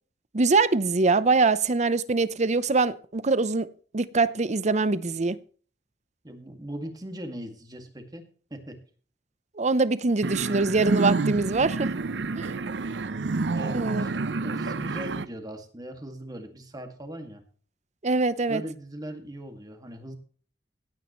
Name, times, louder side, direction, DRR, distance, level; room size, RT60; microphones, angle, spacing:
voice 1, 0.3-5.4 9.6-11.9 12.4-12.5 13.7-14.0 18.0-18.6, right 3 dB, 40° right, 0.7 m, -23 dB
voice 2, 6.2-8.3 8.5-8.8 12.5-12.9 13.5-14.1 14.4-17.4 18.5-20.2, right 1 dB, 25° right, 2.0 m, -39 dB
sound 1, 10.2-15.3, right 3 dB, 85° right, 0.6 m, -29 dB
17.0 x 9.3 x 3.1 m
head